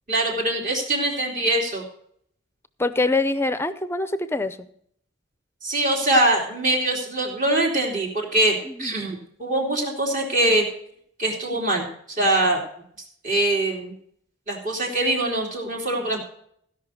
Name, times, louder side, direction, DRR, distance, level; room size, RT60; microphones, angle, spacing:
voice 1, 0.1-1.8 5.6-10.6 11.2-12.6 13.2-13.9 14.5-16.2, right 1 dB, 40° right, 0 dB, 3.2 m, -23 dB
voice 2, 2.8-4.7 8.7-8.9, left 2 dB, 10° left, 13 dB, 0.6 m, -24 dB
16.0 x 5.6 x 6.4 m, 0.66 s
head